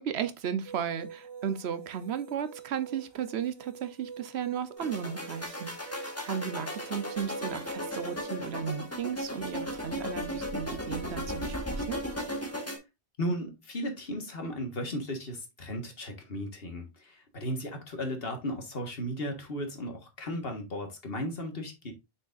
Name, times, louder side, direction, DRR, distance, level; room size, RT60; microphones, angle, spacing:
voice 1, 0.0-12.0, right 8 dB, 90° right, 1.0 m, -35 dB
sound 1, 0.6-8.3, right 7 dB, 30° right, 0.7 m, -46 dB
sound 2, 4.8-12.8, equal, 15° left, 1.7 m, -36 dB
voice 2, 13.2-21.9, equal, 65° left, 1.8 m, -35 dB
6.4 x 6.3 x 2.5 m
omnidirectional pair, 1.1 m